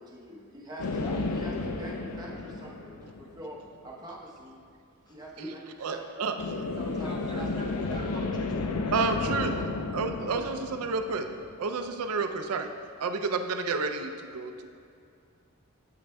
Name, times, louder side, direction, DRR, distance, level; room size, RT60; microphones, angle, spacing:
voice 1, 0.0-4.6 5.1-6.3 6.8-8.1 10.2-10.5, equal, 20° right, -4 dB, 0.8 m, -45 dB
sound 1, 0.8-3.6 6.4-11.8, left 3 dB, 85° left, 0.4 m, -33 dB
voice 2, 5.1-5.5 7.0-9.8, right 1 dB, 20° left, -2 dB, 0.8 m, -44 dB
voice 3, 5.8-6.7 8.9-9.5 9.9-11.3 11.6-12.7 13.0-14.7, right 4 dB, 80° right, 7 dB, 0.4 m, -30 dB
8.2 x 5.9 x 2.2 m, 2.4 s
head